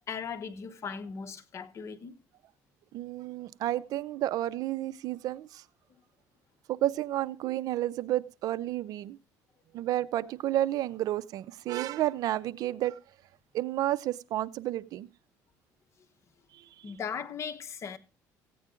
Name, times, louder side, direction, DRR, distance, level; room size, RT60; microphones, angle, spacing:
voice 1, 0.1-2.2 16.8-18.0, left 6 dB, 45° left, 1.1 m, -38 dB
voice 2, 2.9-5.6 6.7-9.2 9.7-13.0 13.5-15.1 16.5-16.9, right 13 dB, 65° right, 0.5 m, -31 dB
15.0 x 8.7 x 3.7 m
cardioid pair, 95°, 7 cm